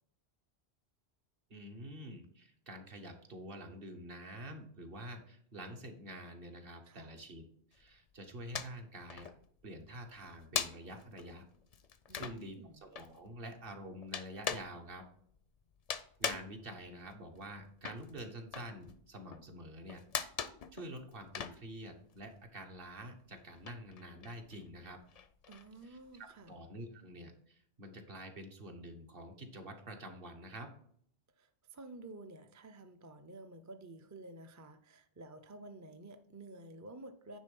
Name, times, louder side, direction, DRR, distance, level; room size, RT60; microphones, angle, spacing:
voice 1, 1.5-7.4 7.7-9.3 9.6-11.4 12.1-15.0 16.2-20.0 20.7-25.0 25.8-30.7, right 1 dB, 55° right, 4 dB, 1.3 m, -47 dB
voice 2, 6.9-7.2 12.1-12.8 25.5-26.5 31.4-37.4, right 2 dB, 25° right, 7 dB, 0.4 m, -51 dB
sound 1, 7.8-8.8 9.1-22.5 22.7-26.4, left 7 dB, 50° left, 0.5 m, -41 dB
9.6 x 3.7 x 5.3 m, 0.63 s
omnidirectional pair, 1.1 m